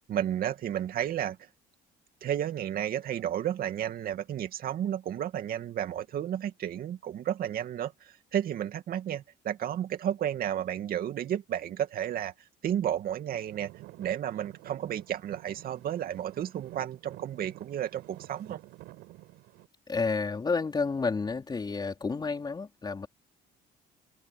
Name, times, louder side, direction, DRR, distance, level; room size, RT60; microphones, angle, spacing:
voice 1, 0.1-1.4 2.2-12.3 12.6-13.7 14.0-18.6, right 10 dB, 60° right, 2.4 m, -32 dB
Traffic noise roadway noise / Engine, 13.3-19.7, right 18 dB, 90° right, 5.3 m, -50 dB
voice 2, 19.9-23.1, left 4 dB, 25° left, 4.5 m, -30 dB
open air
cardioid pair, 110°, 17 cm